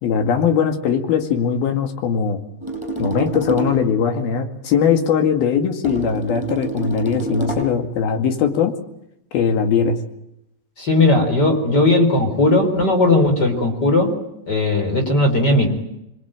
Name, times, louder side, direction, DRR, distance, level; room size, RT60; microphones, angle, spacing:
voice 1, 0.0-2.4 3.0-8.7 9.3-10.0, left 7 dB, 70° left, 6 dB, 4.0 m, -20 dB
sound 1, 2.6-3.8 5.8-7.8, right 3 dB, 5° right, 7.3 m, -27 dB
voice 2, 10.8-14.2 14.5-15.7, left 2 dB, 25° left, 4 dB, 4.4 m, -17 dB
26.5 x 23.0 x 9.0 m, 0.85 s
omnidirectional pair, 4.6 m